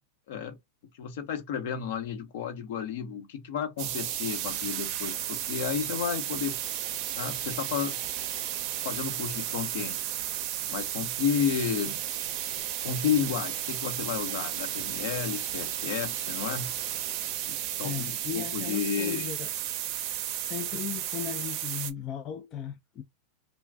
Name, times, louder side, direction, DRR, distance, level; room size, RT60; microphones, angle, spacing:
voice 1, 0.9-6.6 7.2-8.0 8.8-10.0 10.7-12.0 12.8-16.8 17.5-19.3, left 8 dB, 65° left, 0.9 m, -32 dB
sound 1, 3.8-21.9, right 11 dB, 50° right, 0.5 m, -33 dB
voice 2, 17.8-19.5 20.4-23.0, left 10 dB, 35° left, 0.4 m, -37 dB
2.4 x 2.2 x 3.4 m
hypercardioid pair, 115°, 0 cm